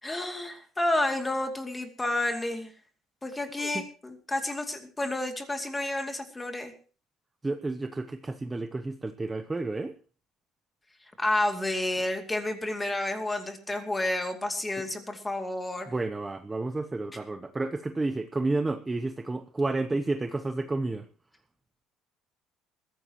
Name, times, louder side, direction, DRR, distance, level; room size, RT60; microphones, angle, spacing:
voice 1, 0.0-2.7 3.2-6.7 11.2-15.9, left 1 dB, 10° left, 5 dB, 2.5 m, -30 dB
voice 2, 7.4-10.0 15.9-21.1, right 2 dB, 10° right, 8 dB, 0.8 m, -31 dB
22.0 x 15.0 x 3.0 m, 0.38 s
cardioid pair, 165°, 0 cm